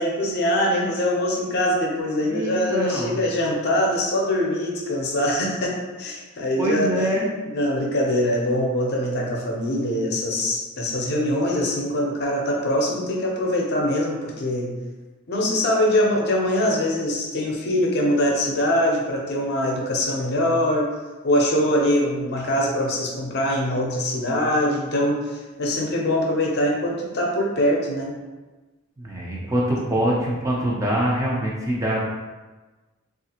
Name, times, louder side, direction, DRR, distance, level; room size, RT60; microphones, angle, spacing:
voice 1, 0.0-7.1 7.5-14.7 15.3-20.9 21.2-28.1, left 1 dB, 50° left, -2 dB, 0.6 m, -23 dB
voice 2, 2.2-3.2 6.6-7.3 29.0-32.0, right 1 dB, 15° right, -4 dB, 0.4 m, -24 dB
3.3 x 2.4 x 2.8 m, 1.2 s
head